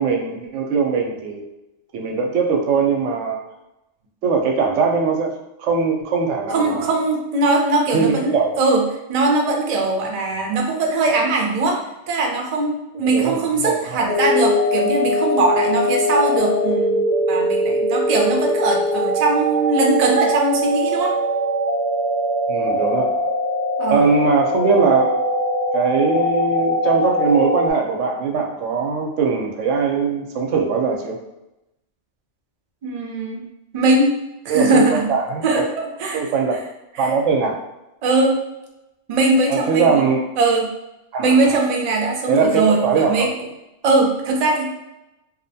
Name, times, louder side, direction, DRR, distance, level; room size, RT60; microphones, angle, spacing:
voice 1, 0.0-1.4 1.9-3.4 4.2-5.3 5.6-7.0 7.9-8.6 13.1-14.1 22.5-23.1 23.9-25.2 25.7-31.2 34.5-34.8 35.1-35.7 36.1-36.6 37.0-37.6 39.5-40.2 41.1-41.6 42.3-43.3 44.5-44.6, right 5 dB, 90° right, 1 dB, 0.9 m, -20 dB
voice 2, 6.5-8.8 9.1-11.8 12.1-17.0 17.3-21.1 23.8-24.1 32.8-33.4 33.7-34.1 34.4-35.1 35.4-36.2 37.0-37.1 38.0-38.4 39.1-40.1 40.4-40.7 41.2-43.3 43.8-44.6, right 2 dB, 55° right, 0 dB, 0.4 m, -20 dB
sound 1, 14.1-27.7, equal, 40° left, 0.6 m, -21 dB
2.6 x 2.1 x 2.6 m, 0.93 s
omnidirectional pair, 1.2 m